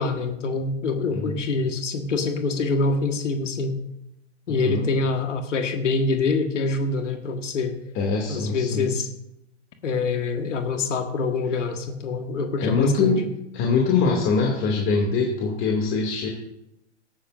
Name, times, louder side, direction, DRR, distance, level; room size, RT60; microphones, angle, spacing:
voice 1, 0.0-3.8 4.5-7.7 8.3-9.1 9.8-13.1, left 3 dB, 85° left, 5 dB, 1.8 m, -25 dB
voice 2, 1.1-1.4 4.5-4.9 7.9-8.9 12.6-13.3 13.5-16.3, left 4 dB, 35° left, -2 dB, 2.6 m, -23 dB
17.5 x 12.5 x 2.6 m, 0.83 s
hypercardioid pair, 125°, 36 cm